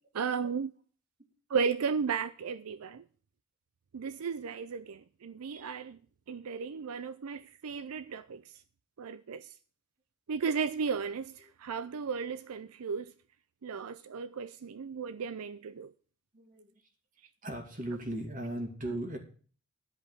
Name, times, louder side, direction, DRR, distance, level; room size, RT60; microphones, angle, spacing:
voice 1, 0.1-0.7 1.5-3.1 3.9-6.0 6.3-8.5 9.0-9.5 10.3-13.1 13.6-15.9, right 5 dB, 85° right, 0.5 m, -35 dB
voice 2, 16.3-16.7 17.4-19.2, right 1 dB, 35° right, 2.2 m, -37 dB
11.0 x 5.3 x 8.4 m
head